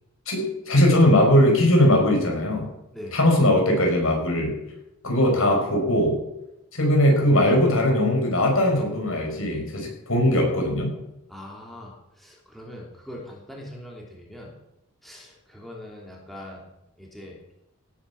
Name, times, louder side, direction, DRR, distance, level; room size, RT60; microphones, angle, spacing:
voice 1, 0.3-2.7 3.1-4.5 5.0-6.2 6.7-10.9, left 1 dB, 75° left, 1 dB, 5.6 m, -20 dB
voice 2, 11.3-14.5 15.0-16.6 17.0-17.4, left 1 dB, ahead, -3 dB, 3.2 m, -41 dB
18.0 x 9.6 x 7.2 m, 0.89 s
head